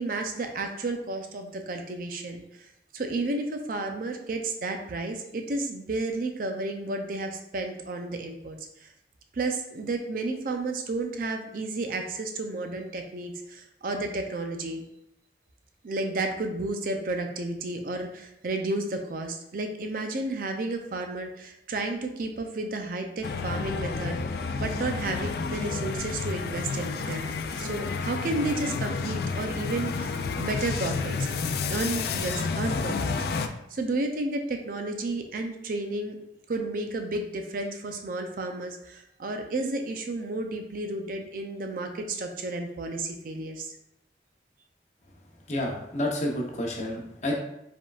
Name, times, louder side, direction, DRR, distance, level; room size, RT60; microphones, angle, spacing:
voice 1, 0.0-2.4 2.9-8.9 9.3-14.9 15.8-24.2 24.6-27.3 27.6-31.3 31.7-36.2 36.5-43.7, right 2 dB, 50° right, 4 dB, 0.5 m, -32 dB
sound 1, 23.2-33.5, left 4 dB, 60° left, 0.3 m, -30 dB
voice 2, 45.5-47.4, left 1 dB, 40° left, -1 dB, 0.8 m, -29 dB
4.8 x 3.5 x 2.4 m, 0.81 s
head